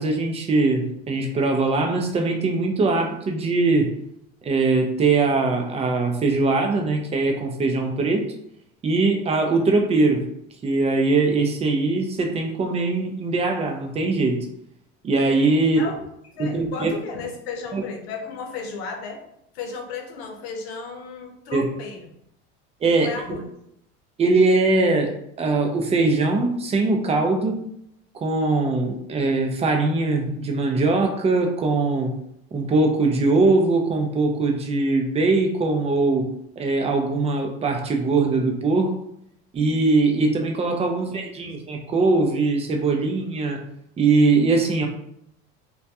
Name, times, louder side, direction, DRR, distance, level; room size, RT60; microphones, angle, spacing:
voice 1, 0.0-3.9 4.4-8.3 8.8-10.2 10.6-14.4 15.0-15.8 16.4-16.9 17.7-17.8 21.5-21.7 22.8-23.4 24.2-27.6 28.1-32.1 32.5-36.3 36.6-38.9 39.5-43.6 44.0-44.9, right 3 dB, 20° right, 3 dB, 0.4 m, -21 dB
voice 2, 15.6-16.0 16.3-19.2 19.5-22.1 23.0-23.5 41.0-41.2, left 5 dB, 85° left, 3 dB, 0.6 m, -34 dB
2.2 x 2.2 x 2.7 m, 0.75 s
supercardioid pair, 105°, 30 cm